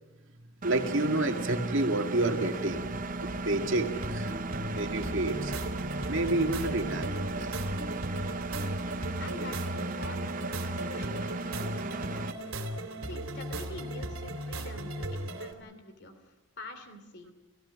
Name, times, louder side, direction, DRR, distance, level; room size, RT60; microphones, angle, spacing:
Engine, 0.6-12.3, right 3 dB, 40° right, 0.8 m, -36 dB
voice 1, 0.6-4.3 4.7-5.5 6.1-7.6, right 2 dB, 65° right, 4 dB, 2.2 m, -29 dB
Motor vehicle (road), 2.7-9.3, equal, 30° left, 3.7 m, -45 dB
sound 1, 4.0-15.5, right 1 dB, 85° right, 2.9 m, -37 dB
voice 2, 9.2-10.4 10.6-12.5 13.0-17.3, left 2 dB, 55° left, 8 dB, 3.0 m, -46 dB
30.0 x 16.5 x 6.5 m, 1.1 s
head